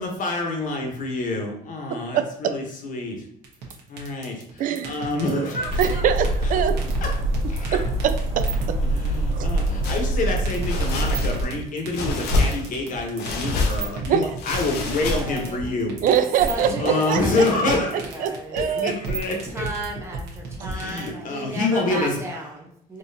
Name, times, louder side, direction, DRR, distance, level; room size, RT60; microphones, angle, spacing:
voice 1, 0.0-3.2 3.9-6.1 6.4-6.5 7.0-7.1 7.5-7.8 8.8-16.0 16.5-18.0 18.5-19.7 20.6-22.2, left 2 dB, 50° left, 2 dB, 1.0 m, -27 dB
voice 2, 1.9-2.6 4.6-5.0 5.3-5.5 5.8-7.0 7.7-8.8 9.3-9.5 14.1-14.3 16.0-17.4 18.2-18.9, right 8 dB, 55° right, 10 dB, 0.4 m, -24 dB
sound 1, 3.4-21.1, right 4 dB, 80° right, 1.0 m, -33 dB
sound 2, 5.7-11.4, right 1 dB, 40° right, 1.4 m, -25 dB
sound 3, 9.8-10.1 10.6-11.5 11.9-12.8 13.2-13.9 14.4-15.5, left 2 dB, 75° left, 0.7 m, -26 dB
voice 3, 14.8-15.7 16.0-18.6 19.4-23.0, right 2 dB, 15° right, -1 dB, 0.8 m, -35 dB
3.9 x 2.8 x 2.7 m, 0.70 s
cardioid pair, 110°, 17 cm